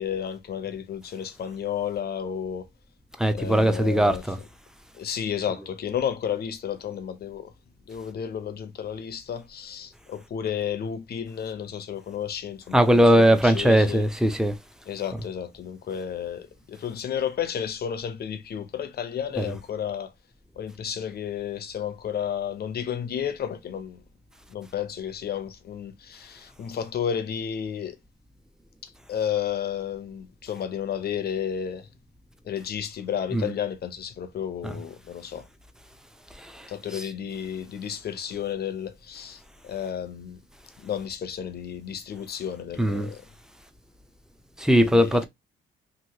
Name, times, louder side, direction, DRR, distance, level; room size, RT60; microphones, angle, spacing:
voice 1, 0.0-2.7 3.3-4.3 5.0-7.5 7.9-14.0 14.9-20.1 20.6-24.0 24.5-28.0 28.8-31.9 32.4-35.5 36.7-40.4 40.8-43.2 44.8-45.3, left 8 dB, 55° left, 0.6 m, -32 dB
voice 2, 3.2-4.4 12.7-14.5 19.4-19.5 33.3-33.5 34.6-34.7 42.8-43.1 44.6-45.3, equal, 5° right, 0.5 m, -19 dB
3.0 x 2.7 x 2.8 m
cardioid pair, 90°, 20 cm